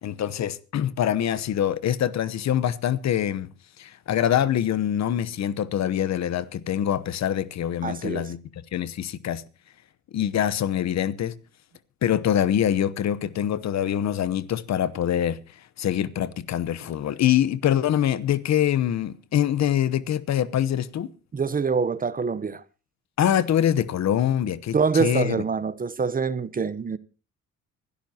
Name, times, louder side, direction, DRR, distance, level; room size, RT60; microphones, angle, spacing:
voice 1, 0.0-8.4 8.7-9.4 10.1-11.3 12.0-15.4 15.8-21.1 23.2-25.4, left 10 dB, 60° left, 1.0 m, -24 dB
voice 2, 7.8-8.3 21.3-22.6 24.7-27.0, right 5 dB, 30° right, 0.8 m, -25 dB
25.0 x 12.5 x 2.8 m
cardioid pair, 90°, 30 cm